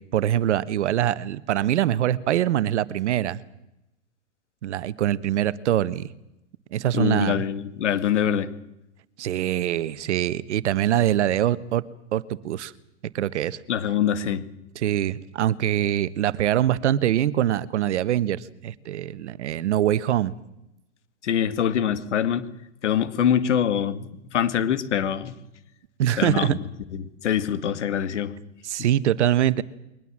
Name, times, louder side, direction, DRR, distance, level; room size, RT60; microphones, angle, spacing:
voice 1, 0.1-3.4 4.6-6.1 6.7-7.4 9.2-11.8 12.1-12.7 13.1-13.6 14.7-20.3 26.0-26.6 28.6-29.6, right 11 dB, 75° right, 16 dB, 1.4 m, -23 dB
voice 2, 6.9-8.5 13.7-14.5 21.2-22.5 22.8-25.3 26.2-26.6 26.9-28.3, left 9 dB, 80° left, 13 dB, 2.2 m, -24 dB
22.5 x 20.0 x 7.5 m, 0.88 s
hypercardioid pair, 145°, 35 cm